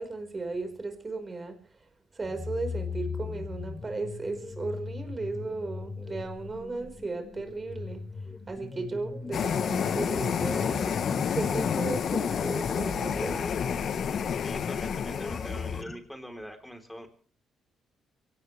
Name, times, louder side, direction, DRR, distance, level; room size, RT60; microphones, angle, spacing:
voice 1, 0.0-1.6 2.1-8.0 8.5-11.0 11.3-13.5, right 3 dB, 30° right, 7 dB, 4.9 m, -35 dB
sound 1, 2.2-16.0, left 4 dB, 25° left, 2.6 m, -39 dB
sound 2, 9.3-15.8, left 7 dB, 60° left, 1.1 m, -29 dB
voice 2, 14.4-17.1, equal, 5° left, 5 dB, 3.8 m, -43 dB
23.5 x 18.0 x 3.4 m, 0.44 s
cardioid pair, 90°, 0 cm